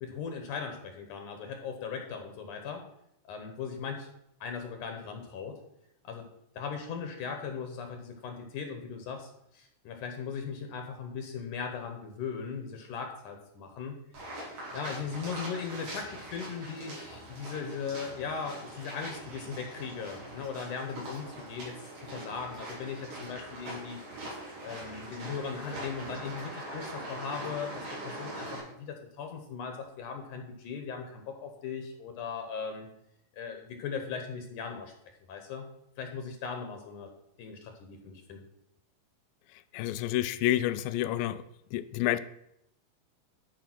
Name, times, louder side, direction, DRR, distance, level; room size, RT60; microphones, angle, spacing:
voice 1, 0.0-2.8 3.3-4.1 4.4-5.6 6.0-6.3 6.6-14.0 14.4-24.0 24.6-32.9 33.4-34.9 35.3-35.7 36.0-37.1 37.4-38.4, left 6 dB, 70° left, 4 dB, 2.4 m, -38 dB
sound 1, 14.1-28.6, right 1 dB, 75° right, 6.0 m, -42 dB
voice 2, 39.7-41.4 41.7-42.2, left 14 dB, 85° left, 14 dB, 2.3 m, -29 dB
11.5 x 5.0 x 6.0 m, 0.79 s
omnidirectional pair, 4.0 m